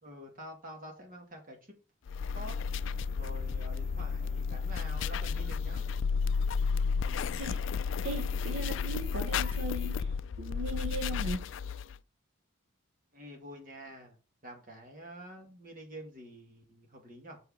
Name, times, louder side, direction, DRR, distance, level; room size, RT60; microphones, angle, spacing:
voice 1, 0.0-1.7 2.3-2.6 3.1-5.8 13.1-14.2 14.4-17.4, right 1 dB, 45° right, 2.0 m, -47 dB
sound 1, 2.1-12.0, left 5 dB, 65° left, 0.4 m, -32 dB
voice 2, 8.0-11.5, right 1 dB, 75° right, 1.0 m, -38 dB
6.8 x 4.9 x 4.8 m
head